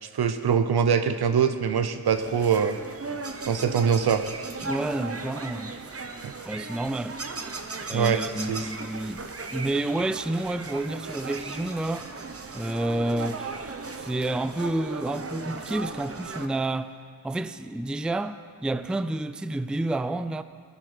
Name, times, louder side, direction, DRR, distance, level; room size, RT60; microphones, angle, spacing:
voice 1, 0.0-2.8 3.5-4.2 7.9-8.7, right 7 dB, 75° right, 0.9 m, -23 dB
sound 1, 2.1-16.5, right 4 dB, 35° right, 1.0 m, -37 dB
voice 2, 4.6-5.7 6.4-7.2 7.9-12.1 12.5-16.9 17.2-20.4, right 2 dB, ahead, 0.4 m, -29 dB
18.0 x 9.2 x 5.1 m
cardioid pair, 65°, 39 cm